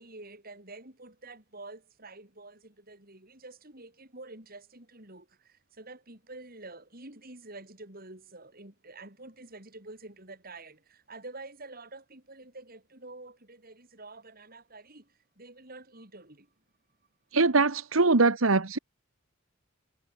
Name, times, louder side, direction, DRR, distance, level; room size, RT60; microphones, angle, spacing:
voice 1, 0.0-16.5, right 2 dB, 45° right, 6.7 m, -48 dB
voice 2, 17.3-18.8, right 3 dB, 85° right, 1.5 m, -22 dB
head